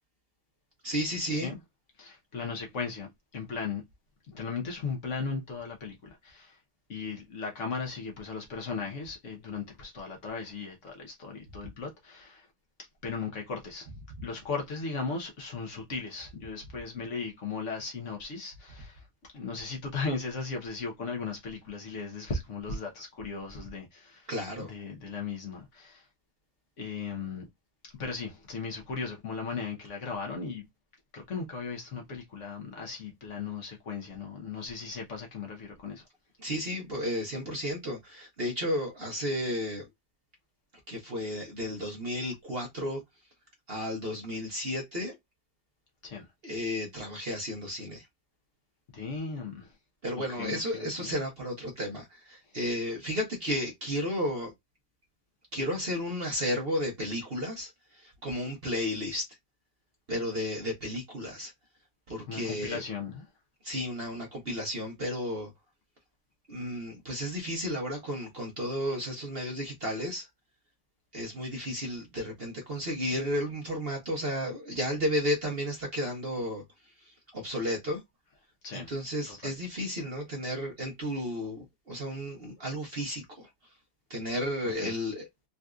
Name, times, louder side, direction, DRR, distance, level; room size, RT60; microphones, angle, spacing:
voice 1, 0.8-1.5 24.3-24.7 36.4-39.8 40.9-43.0 43.7-45.2 46.4-48.1 50.0-54.5 55.5-59.3 60.1-61.5 62.1-62.8 63.6-65.5 66.5-70.3 71.1-76.6 77.0-78.0 78.7-83.5 84.1-85.3, equal, 50° right, 0.7 m, -33 dB
voice 2, 2.0-3.8 4.3-6.6 6.9-12.5 13.0-13.9 14.2-19.0 19.3-24.3 24.6-26.1 26.8-27.4 27.9-30.6 31.1-36.0 46.0-46.3 48.9-49.7 50.3-51.1 62.3-63.3 78.6-78.9 79.3-79.5 84.8-84.9, left 4 dB, 60° left, 0.8 m, -37 dB
4.0 x 2.5 x 2.3 m
omnidirectional pair, 2.1 m